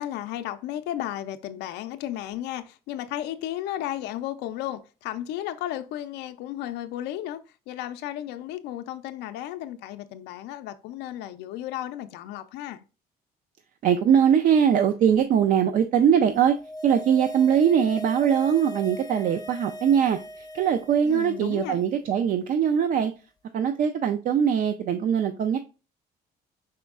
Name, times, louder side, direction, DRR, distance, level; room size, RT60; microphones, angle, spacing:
voice 1, 0.0-7.4 7.7-12.8 21.0-21.8, left 12 dB, 90° left, 0.4 m, -34 dB
voice 2, 13.8-16.6 16.8-20.2 20.5-23.1 23.5-25.6, right 8 dB, 55° right, 0.4 m, -21 dB
sound 1, 16.4-21.8 22.1-22.2, equal, 20° left, 0.5 m, -39 dB
5.2 x 4.2 x 2.3 m
cardioid pair, 110°, 17 cm